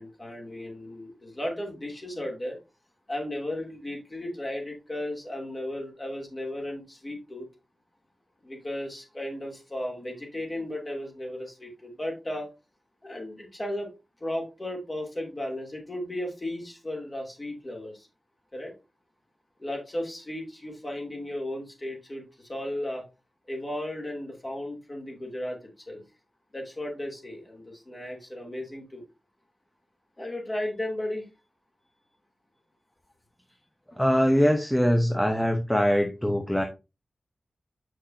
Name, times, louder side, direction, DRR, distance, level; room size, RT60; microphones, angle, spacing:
voice 1, 0.0-2.6 3.1-7.5 8.4-12.5 13.0-13.9 14.2-18.1 18.5-18.7 19.6-23.0 23.5-26.0 26.5-29.0 30.2-31.3, left 1 dB, 25° left, 0 dB, 2.8 m, -35 dB
voice 2, 34.0-36.6, equal, 5° left, 3 dB, 0.8 m, -22 dB
7.6 x 6.3 x 2.7 m, 0.27 s
wide cardioid pair, 140°, 0 cm